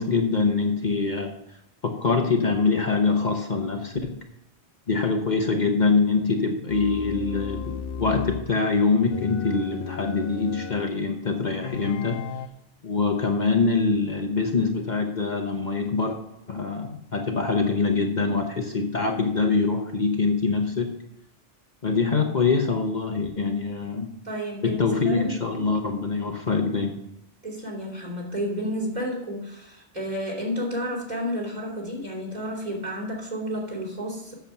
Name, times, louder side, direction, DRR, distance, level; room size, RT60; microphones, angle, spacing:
voice 1, 0.0-1.4 1.8-4.2 4.9-12.2 12.8-16.2 16.5-21.0 21.8-24.1 24.6-27.0, left 4 dB, 45° left, 3 dB, 1.0 m, -24 dB
sound 1, 6.7-8.5 9.1-11.0 11.6-12.5, left 7 dB, 65° left, 0.7 m, -35 dB
voice 2, 24.2-25.8 27.4-34.3, equal, 40° right, -1 dB, 3.3 m, -31 dB
8.1 x 7.2 x 7.0 m, 0.81 s
omnidirectional pair, 1.1 m